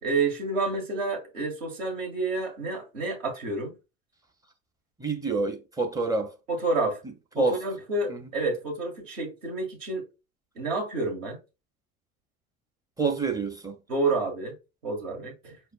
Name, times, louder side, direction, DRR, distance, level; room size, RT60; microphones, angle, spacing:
voice 1, 0.0-3.7 6.5-7.0 7.4-10.0 10.6-11.4 13.9-14.5 14.8-15.6, right 3 dB, 65° right, 1.8 m, -29 dB
voice 2, 5.0-6.3 7.4-7.6 8.1-8.3 13.0-13.8, right 3 dB, 10° right, 0.7 m, -27 dB
4.4 x 4.3 x 2.3 m
figure-of-eight pair, 75°, 41 cm